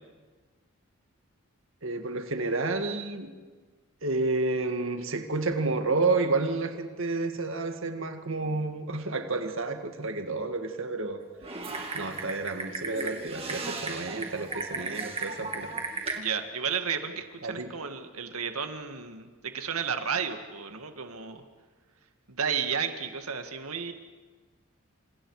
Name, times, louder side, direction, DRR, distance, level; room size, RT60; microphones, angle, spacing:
voice 1, 1.8-3.3 4.0-11.2 11.5-15.7 17.4-17.7, right 3 dB, 65° right, 6 dB, 1.9 m, -30 dB
Typing, 11.4-16.2, right 3 dB, 25° right, 2.3 m, -35 dB
voice 2, 16.2-21.4 22.3-23.9, right 6 dB, 85° right, 7 dB, 1.9 m, -32 dB
28.5 x 27.0 x 4.9 m, 1.4 s
head